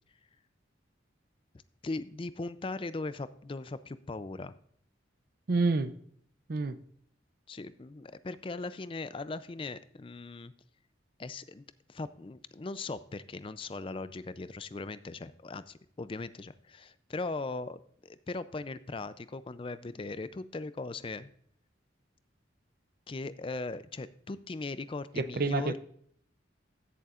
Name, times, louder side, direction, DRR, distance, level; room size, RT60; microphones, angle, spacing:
voice 1, 1.8-4.5 7.5-10.5 11.2-21.3 23.1-25.8, left 3 dB, 25° left, 14 dB, 0.4 m, -39 dB
voice 2, 5.5-5.9 6.5-6.8 25.1-25.8, right 3 dB, 50° right, 12 dB, 0.5 m, -28 dB
15.5 x 6.9 x 2.5 m, 0.63 s
head